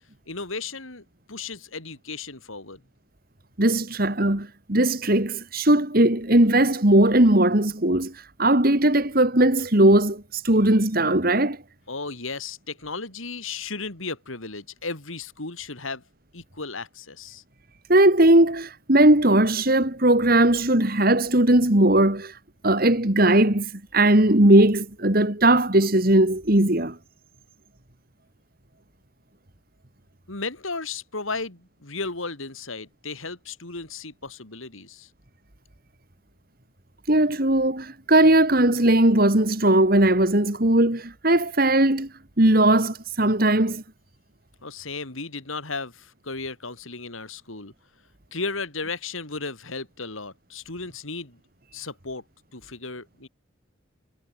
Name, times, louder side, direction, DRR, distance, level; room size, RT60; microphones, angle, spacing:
voice 1, 0.3-2.8 11.9-16.0 16.3-17.4 30.3-35.1 44.6-47.7 48.3-51.4 51.7-52.2 52.5-53.3, left 4 dB, 85° left, 4.2 m, -35 dB
voice 2, 3.6-8.1 8.4-11.6 17.9-22.3 22.6-23.7 23.9-27.0 37.1-42.1 42.4-43.8, right 1 dB, 45° right, 2.5 m, -19 dB
head